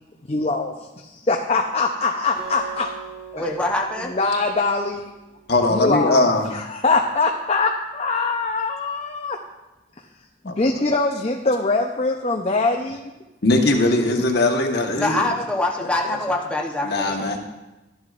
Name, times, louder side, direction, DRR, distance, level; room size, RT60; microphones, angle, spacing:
voice 1, 0.3-2.9 3.3-3.4 4.1-5.1 5.7-9.4 10.4-13.0, left 3 dB, 35° left, 2 dB, 0.6 m, -23 dB
Acoustic guitar, 2.4-5.6, right 5 dB, 20° right, 3.2 m, -41 dB
voice 2, 3.3-4.1 15.0-17.4, left 2 dB, 5° left, -1 dB, 0.9 m, -24 dB
voice 3, 5.5-6.5 10.4-10.6 13.4-15.2 15.8-16.2 16.8-17.4, left 2 dB, 60° left, 2 dB, 1.3 m, -20 dB
13.0 x 11.0 x 2.5 m, 1.0 s
head